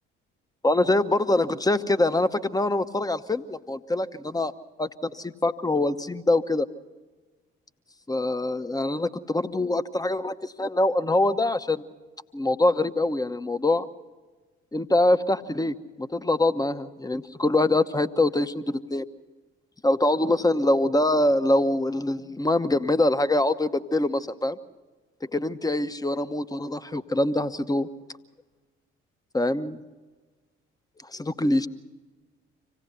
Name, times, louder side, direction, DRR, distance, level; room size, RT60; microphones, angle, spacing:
voice 1, 0.6-4.5 4.8-6.7 8.1-11.8 12.3-13.9 14.7-19.1 19.8-24.6 25.3-27.9 29.3-29.8 31.0-31.7, left 2 dB, 10° left, 12 dB, 0.9 m, -24 dB
26.0 x 17.0 x 6.8 m, 1.3 s
figure-of-eight pair, 45°, 36 cm